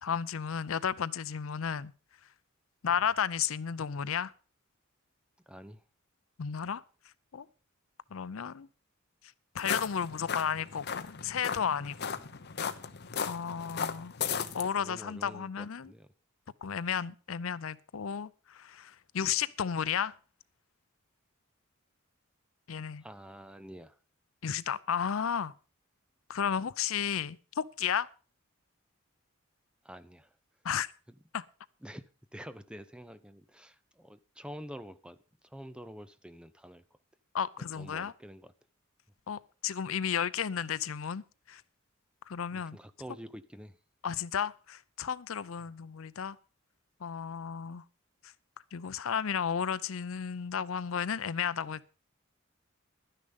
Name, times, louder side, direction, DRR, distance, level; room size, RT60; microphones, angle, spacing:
voice 1, 0.0-1.9 2.8-4.3 6.4-6.8 7.3-7.5 8.1-8.7 9.5-12.2 13.3-14.1 14.5-15.9 16.6-20.1 22.7-23.0 24.4-25.5 26.3-28.1 30.6-30.9 31.3-31.4 37.3-38.1 39.3-41.2 41.5-41.6 42.3-42.8 44.0-46.4 47.0-47.8 48.7-51.9, left 7 dB, 75° left, 0.5 m, -33 dB
voice 2, 5.5-5.8 12.2-12.3 14.8-16.1 23.0-24.0 29.8-30.3 31.8-36.8 37.6-38.5 42.5-43.8, equal, 5° right, 0.6 m, -48 dB
sound 1, 9.6-14.7, left 7 dB, 55° left, 0.9 m, -36 dB
12.0 x 10.0 x 5.2 m
head